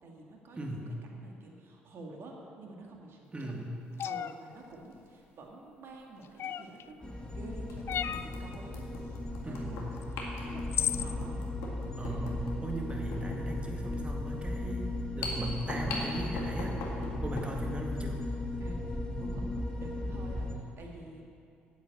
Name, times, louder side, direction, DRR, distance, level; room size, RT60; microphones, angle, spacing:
voice 1, 0.0-0.8 1.1-3.6 4.0-8.9 9.4-11.5 17.2-17.7 18.6-21.2, right 2 dB, 55° right, 0 dB, 2.0 m, -49 dB
voice 2, 0.6-0.9 3.3-3.6 9.4-9.8 12.0-16.8 17.2-18.2, right 1 dB, 25° right, 0 dB, 2.0 m, -38 dB
sound 1, 4.0-4.3 6.4-6.8 7.9-8.3 10.0-10.1 10.7-11.1, left 9 dB, 55° left, 0.4 m, -32 dB
sound 2, 4.7-4.9 6.4-6.5 7.1-7.2 7.7-17.6, left 3 dB, 75° left, 2.0 m, -42 dB
sound 3, 7.0-20.5, left 1 dB, 20° left, 2.0 m, -36 dB
9.5 x 8.0 x 7.8 m, 2.5 s
hypercardioid pair, 55°, 5 cm